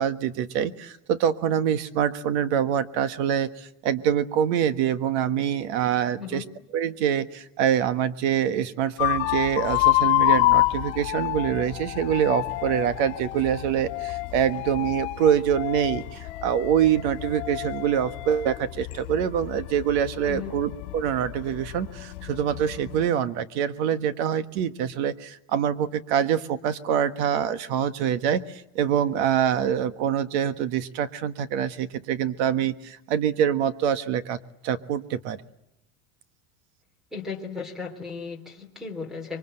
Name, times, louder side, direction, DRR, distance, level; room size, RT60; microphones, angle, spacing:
voice 1, 0.0-6.4 6.7-34.4 34.6-35.4, right 9 dB, 55° right, 11 dB, 1.5 m, -25 dB
voice 2, 6.2-6.5 20.2-20.6 37.1-39.4, left 5 dB, ahead, 9 dB, 3.2 m, -35 dB
sound 1, 9.0-23.1, left 19 dB, 55° left, 3.2 m, -28 dB
26.5 x 23.5 x 7.8 m, 0.86 s
supercardioid pair, 165°, 41 cm